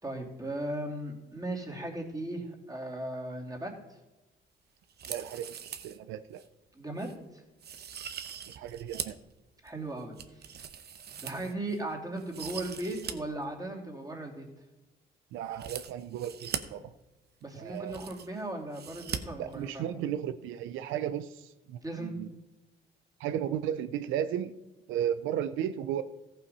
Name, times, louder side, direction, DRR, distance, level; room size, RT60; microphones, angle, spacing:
voice 1, 0.0-3.8 6.7-7.4 9.6-10.5 11.2-14.4 17.4-19.8 21.8-22.2, right 1 dB, 20° right, 0 dB, 2.8 m, -37 dB
sound 1, 4.9-6.0 6.4-6.5 7.0-7.1 7.6-9.2 9.7-11.8 12.2-13.1 13.4-13.5 15.5-16.6 17.4-17.5 17.7-18.4 18.7-19.2 19.5-19.6, right 8 dB, 55° right, 0.9 m, -40 dB
voice 2, 5.1-6.4 8.6-9.2 15.3-16.9 17.5-18.0 19.4-22.3 23.2-24.5 24.9-26.0, right 10 dB, 90° right, 13 dB, 0.5 m, -34 dB
14.5 x 5.7 x 5.4 m, 1.0 s
cardioid pair, 75°, 20 cm